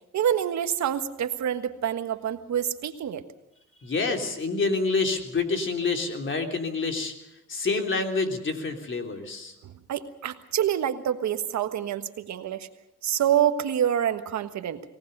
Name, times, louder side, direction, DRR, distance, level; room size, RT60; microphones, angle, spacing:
voice 1, 0.1-3.2 9.6-12.7 13.0-14.8, right 10 dB, 65° right, 9 dB, 1.5 m, -27 dB
voice 2, 3.8-7.1 7.5-9.5, left 3 dB, 40° left, 4 dB, 3.5 m, -27 dB
23.5 x 18.5 x 6.7 m, 0.88 s
cardioid pair, 90°, 30 cm